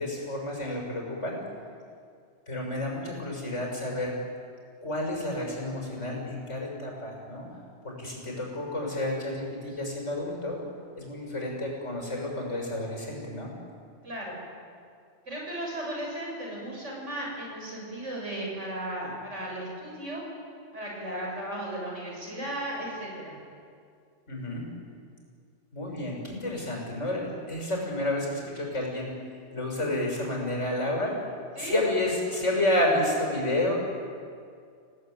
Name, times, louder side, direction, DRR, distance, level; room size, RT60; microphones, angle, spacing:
voice 1, 0.0-1.4 2.5-4.2 4.8-7.5 7.8-10.6 11.0-13.5 24.3-24.6 25.7-29.1 29.5-31.1 31.6-33.7, left 1 dB, 80° left, 0 dB, 6.8 m, -30 dB
voice 2, 14.0-14.4 15.3-20.2 20.7-23.4 31.6-31.8, right 1 dB, 80° right, -2 dB, 7.6 m, -35 dB
27.5 x 18.0 x 9.4 m, 2.3 s
omnidirectional pair, 1.2 m